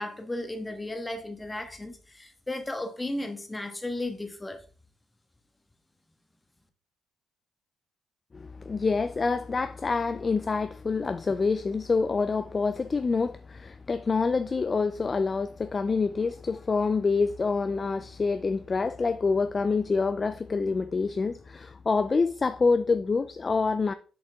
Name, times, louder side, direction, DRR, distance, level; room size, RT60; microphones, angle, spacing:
voice 1, 0.0-4.6, left 1 dB, 15° left, 1.3 m, -35 dB
voice 2, 8.3-23.9, left 4 dB, 30° left, 0.4 m, -27 dB
7.0 x 5.3 x 3.5 m
cardioid pair, 90°, 0 cm